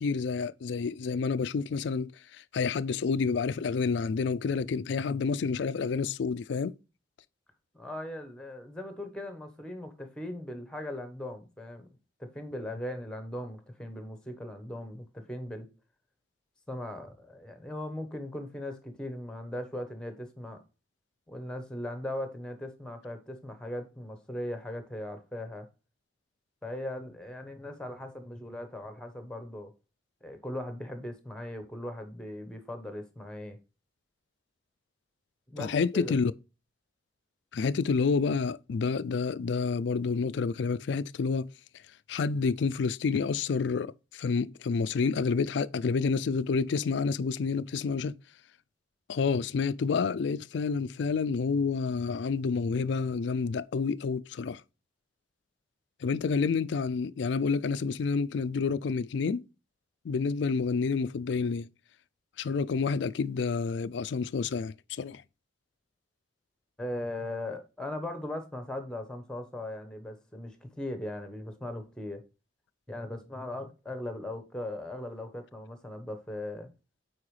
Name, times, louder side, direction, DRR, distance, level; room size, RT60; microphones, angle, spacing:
voice 1, 0.0-6.8 35.6-36.3 37.5-41.5 42.1-48.2 49.1-54.6 56.0-59.4 60.0-61.7 62.4-65.2, left 5 dB, 60° left, 0.4 m, -29 dB
voice 2, 7.7-11.9 12.2-15.7 16.7-20.6 21.3-25.7 26.6-29.7 30.2-33.6 35.5-36.2 66.8-72.2 72.9-76.7, left 1 dB, 5° left, 1.1 m, -39 dB
8.6 x 4.6 x 3.2 m
head